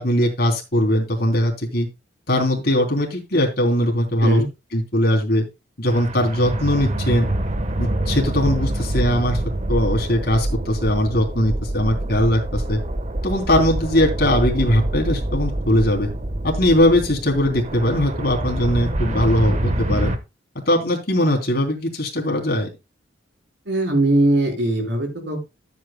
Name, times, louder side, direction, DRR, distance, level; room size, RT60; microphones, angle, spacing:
voice 1, 0.0-1.9 2.3-4.4 4.7-5.4 5.8-7.3 7.8-9.4 9.7-12.8 13.2-16.1 16.4-20.1 20.7-22.7, left 1 dB, 55° left, 1 dB, 3.2 m, -20 dB
sound 1, 5.9-20.2, right 1 dB, 40° right, 1.2 m, -25 dB
voice 2, 23.6-25.4, right 1 dB, 70° right, 3 dB, 4.8 m, -20 dB
13.5 x 8.3 x 2.2 m, 0.25 s
head